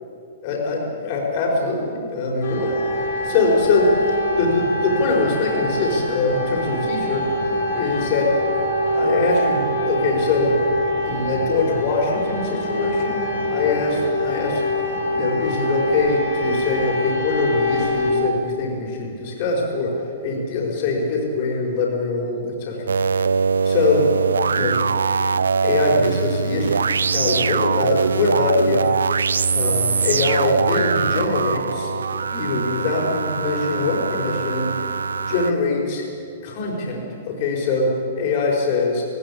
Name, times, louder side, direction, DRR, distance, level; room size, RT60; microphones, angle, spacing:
voice 1, 0.4-3.9 4.3-7.3 7.7-8.3 8.9-10.6 11.0-14.0 14.2-14.6 15.1-22.9 23.6-24.1 24.5-24.8 25.6-26.8 27.1-28.9 29.5-34.9 35.3-36.0 36.4-39.0, left 3 dB, 50° left, -1 dB, 5.1 m, -23 dB
sound 1, 2.4-18.1, equal, 70° left, 4.0 m, -24 dB
sound 2, 22.9-35.5, right 5 dB, 80° right, 0.5 m, -22 dB
19.0 x 18.0 x 8.6 m, 2.6 s
hypercardioid pair, 115°, 0 cm